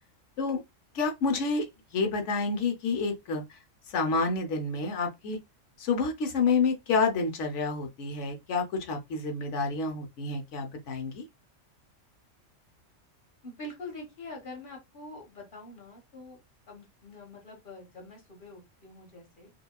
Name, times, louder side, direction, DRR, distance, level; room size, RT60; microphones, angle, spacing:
voice 1, 0.9-1.7 1.9-3.4 3.9-5.4 5.8-11.2, left 4 dB, 70° left, 1.1 m, -29 dB
voice 2, 13.4-16.4 16.7-19.5, left 2 dB, 40° left, 1.4 m, -45 dB
4.9 x 2.3 x 2.2 m
omnidirectional pair, 1.3 m